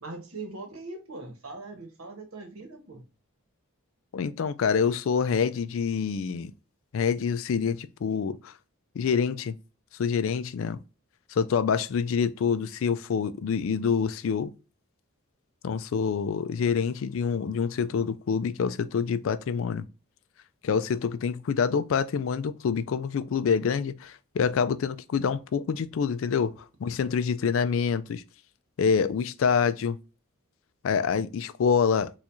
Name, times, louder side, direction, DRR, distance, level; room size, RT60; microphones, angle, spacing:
voice 1, 0.0-3.0, right 3 dB, 80° right, 1.0 m, -41 dB
voice 2, 4.1-6.5 6.9-8.5 9.0-9.6 10.0-10.8 11.3-14.5 15.6-19.9 20.6-28.2 28.8-30.0 30.8-32.1, left 6 dB, 70° left, 0.3 m, -26 dB
4.4 x 2.4 x 2.5 m
head